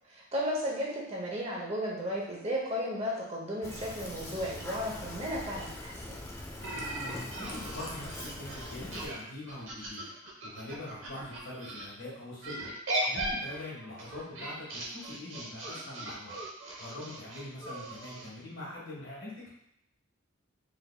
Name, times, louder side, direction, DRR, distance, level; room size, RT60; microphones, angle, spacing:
voice 1, 0.1-6.2, equal, 30° right, -3 dB, 0.7 m, -34 dB
Fill (with liquid), 3.6-9.1, left 1 dB, 15° left, 0.3 m, -42 dB
sound 1, 6.6-11.9 12.4-18.3, right 1 dB, 65° right, 0.7 m, -38 dB
voice 2, 6.9-10.1 10.4-12.7 13.1-16.4 16.8-19.5, left 1 dB, 65° left, -5 dB, 1.4 m, -43 dB
3.5 x 3.4 x 2.2 m, 0.74 s
head